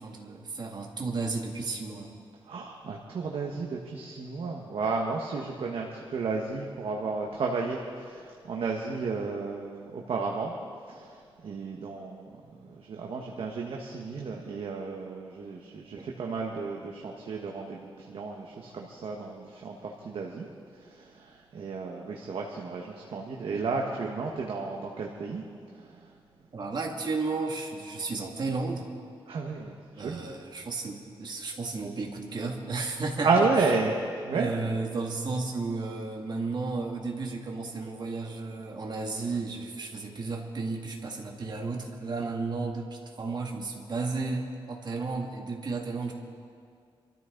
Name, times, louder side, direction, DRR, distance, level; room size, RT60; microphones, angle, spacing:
voice 1, 0.0-2.2 16.0-16.1 26.5-28.9 30.0-33.7 34.3-46.1, right 3 dB, 50° right, 1 dB, 2.2 m, -33 dB
voice 2, 2.5-10.5 10.9-20.5 20.8-25.4 25.7-26.1 29.3-30.3 33.2-34.5, right 4 dB, 75° right, 0 dB, 1.4 m, -32 dB
26.0 x 14.0 x 4.0 m, 2.2 s
cardioid pair, 95°, 9 cm